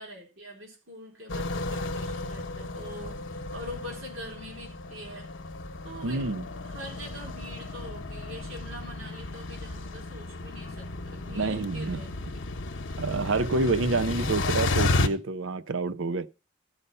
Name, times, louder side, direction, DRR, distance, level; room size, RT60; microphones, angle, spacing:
voice 1, 0.0-3.2 3.5-5.3 5.8-6.2 6.6-12.4, equal, 90° right, 3.9 m, -44 dB
sound 1, 1.3-15.1, left 2 dB, 65° left, 1.0 m, -33 dB
voice 2, 6.0-6.5 11.3-12.0 13.0-16.3, right 3 dB, 75° right, 0.7 m, -28 dB
14.0 x 5.5 x 5.5 m
head